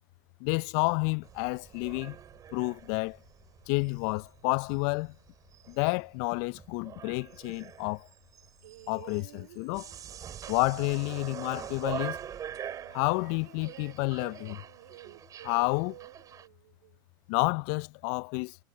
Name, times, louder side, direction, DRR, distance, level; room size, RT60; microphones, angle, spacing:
voice 1, 0.4-2.2 2.5-3.2 3.7-5.2 5.7-8.1 8.9-9.9 10.5-12.2 12.9-14.6 15.4-16.0 17.3-18.6, left 30 dB, 55° left, 0.5 m, -30 dB
sound 1, 1.2-16.5, right 9 dB, 35° right, 7.8 m, -44 dB
sound 2, 8.6-17.0 18.0-18.1, right 16 dB, 70° right, 2.9 m, -52 dB
hypercardioid pair, 95°, 11 cm